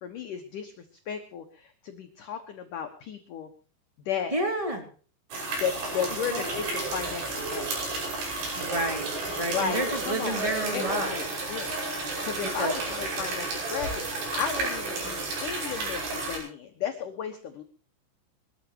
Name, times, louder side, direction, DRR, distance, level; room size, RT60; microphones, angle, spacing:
voice 1, 0.0-3.5 4.1-4.3 5.5-7.8 9.5-17.6, left 8 dB, 70° left, 5 dB, 2.0 m, -34 dB
voice 2, 4.3-4.8 6.3-6.4 8.5-11.2 12.6-13.0, right 1 dB, 10° right, 3 dB, 2.8 m, -30 dB
sound 1, 5.3-16.4, right 2 dB, 70° right, 8.3 m, -32 dB
22.5 x 14.5 x 3.0 m, 0.41 s
omnidirectional pair, 5.8 m